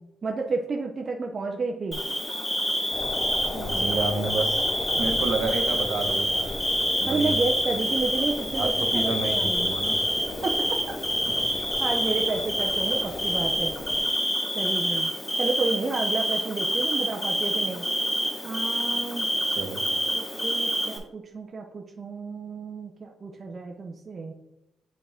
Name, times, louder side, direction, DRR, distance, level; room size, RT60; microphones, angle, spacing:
voice 1, 0.0-2.0 3.5-4.0 7.1-9.7 10.4-10.8 11.8-13.8 14.5-17.9 18.4-19.3 20.1-24.3, right 3 dB, 35° right, 1 dB, 0.6 m, -31 dB
Bird / Cricket, 1.9-21.0, equal, 10° left, 1.0 m, -27 dB
sound 1, 2.9-14.0, left 3 dB, 40° left, 0.6 m, -37 dB
voice 2, 3.6-4.6 4.9-6.5 7.0-7.3 8.5-10.0 19.6-19.8, right 3 dB, 65° right, 4 dB, 1.0 m, -30 dB
8.5 x 3.7 x 3.4 m, 0.86 s
cardioid pair, 135°, 0 cm